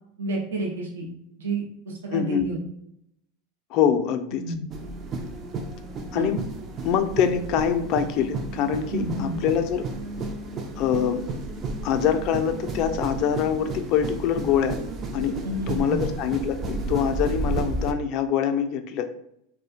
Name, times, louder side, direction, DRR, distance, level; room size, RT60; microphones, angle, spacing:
voice 1, 0.2-1.1 1.4-2.6 4.3-4.7 6.1-6.3 8.9-9.4 15.4-16.0, right 2 dB, 85° right, -1 dB, 0.6 m, -30 dB
voice 2, 2.1-2.5 3.7-4.4 6.1-6.4 6.8-9.9 10.8-11.2 11.8-14.8 15.1-15.4 15.7-19.1, left 8 dB, 50° left, 8 dB, 0.3 m, -24 dB
sound 1, 4.7-17.9, right 3 dB, 35° right, 0.3 m, -32 dB
2.3 x 2.1 x 2.7 m, 0.76 s
hypercardioid pair, 105°, 0 cm